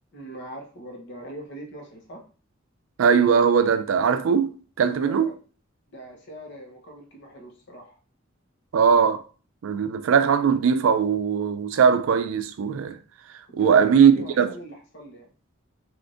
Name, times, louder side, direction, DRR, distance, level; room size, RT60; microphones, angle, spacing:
voice 1, 0.1-2.2 4.9-5.4 5.9-8.0 13.6-15.3, right 1 dB, 60° left, 0.9 m, -42 dB
voice 2, 3.0-5.3 8.7-9.2 9.6-13.0 13.5-14.5, right 6 dB, 80° right, 0.4 m, -20 dB
3.5 x 2.5 x 2.5 m
head